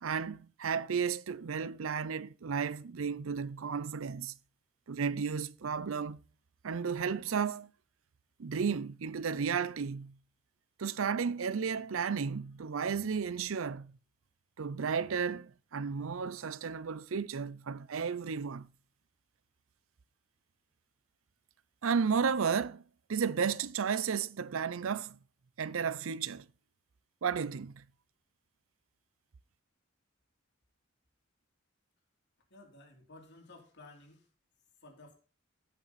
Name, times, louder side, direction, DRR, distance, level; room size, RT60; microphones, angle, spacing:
voice 1, 0.0-4.3 4.9-6.2 6.6-7.7 8.4-10.1 10.8-13.9 14.6-18.7 21.8-22.8 23.1-25.2 25.6-26.5 27.2-27.8, right 6 dB, 70° right, 0.5 m, -33 dB
voice 2, 32.5-34.3 34.8-35.1, left 2 dB, 60° left, 3.0 m, -54 dB
16.5 x 5.8 x 4.2 m
head